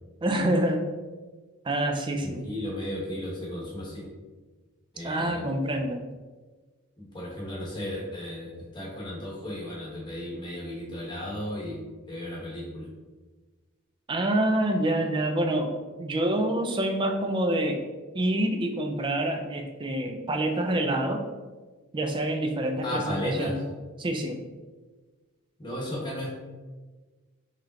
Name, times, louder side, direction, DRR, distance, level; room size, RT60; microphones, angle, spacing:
voice 1, 0.2-0.9 1.6-2.4 5.0-6.0 14.1-15.7 16.0-17.8 18.1-21.2 21.9-23.6 24.0-24.4, right 1 dB, 20° right, 4 dB, 0.3 m, -27 dB
voice 2, 2.2-4.0 4.9-5.4 7.0-11.8 12.1-12.9 22.8-23.6 25.6-26.3, left 1 dB, 20° left, -4 dB, 1.0 m, -34 dB
4.9 x 3.2 x 2.7 m, 1.3 s
head